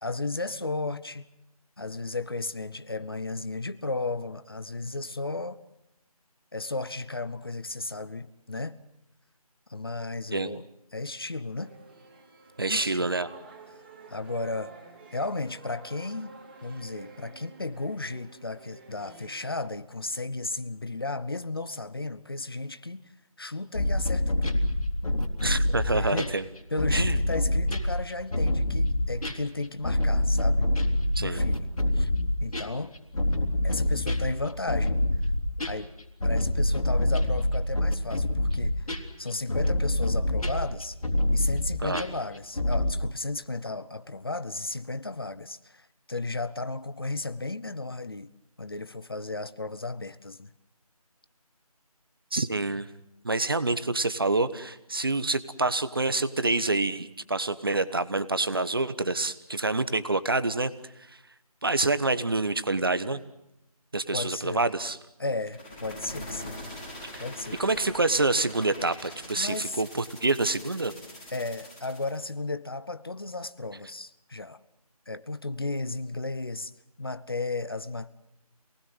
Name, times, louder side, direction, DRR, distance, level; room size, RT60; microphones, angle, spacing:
voice 1, 0.0-1.3 1.8-5.6 6.5-8.8 9.7-10.6 10.9-11.7 12.7-13.1 14.1-14.7 15.1-16.3 16.6-23.0 23.4-24.7 25.7-26.4 26.7-30.7 31.2-32.1 32.4-33.0 33.6-35.0 35.6-35.9 36.2-40.9 41.3-48.3 48.6-50.5 64.1-64.7 65.2-66.6 67.2-67.6 69.4-69.8 71.3-74.6 75.1-76.7 77.0-78.1, left 2 dB, 40° left, 0.9 m, -34 dB
sound 1, 11.6-19.5, right 3 dB, 15° right, 2.7 m, -50 dB
voice 2, 12.6-13.3 25.4-26.4 26.9-27.2 31.2-31.4 41.8-42.0 52.3-52.9 53.2-60.7 61.6-63.2 63.9-65.0 67.1-67.2 67.6-70.9, right 2 dB, 35° right, 1.2 m, -27 dB
sound 2, 23.7-42.9, left 1 dB, 65° left, 3.7 m, -26 dB
sound 3, 65.4-72.2, left 1 dB, 10° left, 3.9 m, -43 dB
27.5 x 19.5 x 7.9 m
figure-of-eight pair, 175°, 20 cm